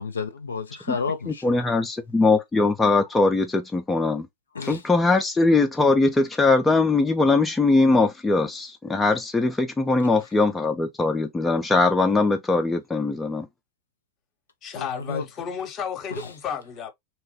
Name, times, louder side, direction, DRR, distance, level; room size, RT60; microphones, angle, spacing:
voice 1, 0.0-1.6 4.5-4.8 14.7-15.2 16.1-16.3, left 5 dB, 75° left, 0.4 m, -31 dB
voice 2, 1.3-4.3 4.6-13.5, left 3 dB, 10° left, 0.3 m, -21 dB
voice 3, 14.6-16.9, left 7 dB, 30° left, 0.7 m, -32 dB
2.9 x 2.1 x 3.0 m
figure-of-eight pair, 90°, 0 cm